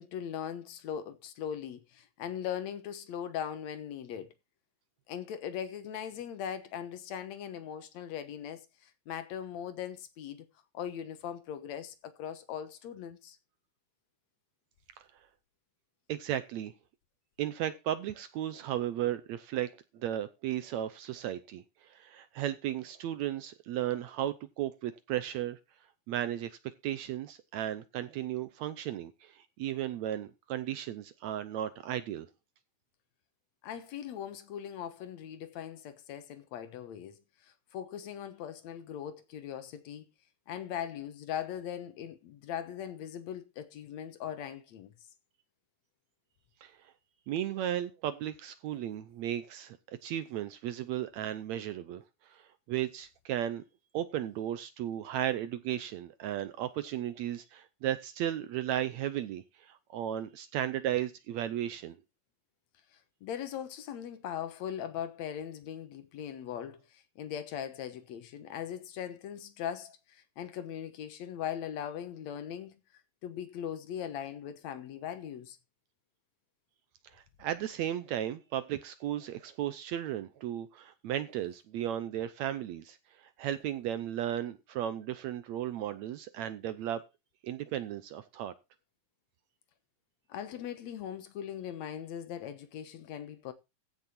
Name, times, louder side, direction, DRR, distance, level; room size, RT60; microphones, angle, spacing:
voice 1, 0.0-4.3 5.1-10.5 10.7-13.4 33.6-40.1 40.5-44.9 63.2-72.8 73.2-75.6 90.3-93.5, left 9 dB, 65° left, 2.2 m, -40 dB
voice 2, 16.1-16.7 17.4-19.7 19.9-25.6 26.1-32.3 46.6-46.9 47.3-53.6 53.9-62.0 77.1-87.0 87.4-88.5, right 11 dB, 75° right, 1.7 m, -35 dB
15.0 x 6.5 x 4.3 m
omnidirectional pair, 3.8 m